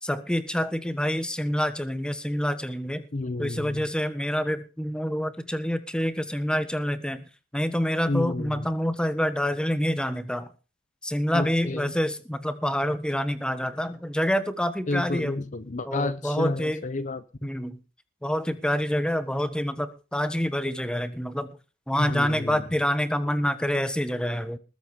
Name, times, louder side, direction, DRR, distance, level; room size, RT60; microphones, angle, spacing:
voice 1, 0.0-3.1 3.4-7.2 7.5-10.5 11.0-15.4 15.8-16.8 17.4-17.8 18.2-21.5 21.9-24.6, equal, 5° left, 11 dB, 1.4 m, -27 dB
voice 2, 3.1-3.9 8.1-8.7 11.3-11.9 14.9-17.5 22.0-22.6, left 2 dB, 40° left, 14 dB, 0.7 m, -30 dB
20.0 x 8.1 x 5.1 m, 0.34 s
head